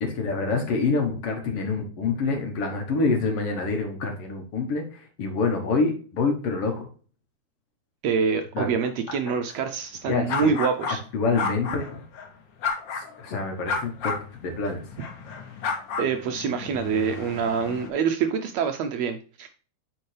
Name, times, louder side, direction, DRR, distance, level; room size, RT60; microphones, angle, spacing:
voice 1, 0.0-6.9 8.6-8.8 10.1-10.5 11.1-12.0 12.9-14.1 14.4-14.8, left 4 dB, 60° left, 3 dB, 1.9 m, -26 dB
voice 2, 8.0-11.0 16.0-19.5, right 6 dB, 80° right, 7 dB, 1.6 m, -26 dB
sound 1, 10.3-11.0 11.3-12.3 12.6-13.2 13.7-17.9, left 5 dB, 85° left, 1.0 m, -32 dB
8.8 x 4.6 x 3.2 m, 0.40 s
omnidirectional pair, 3.5 m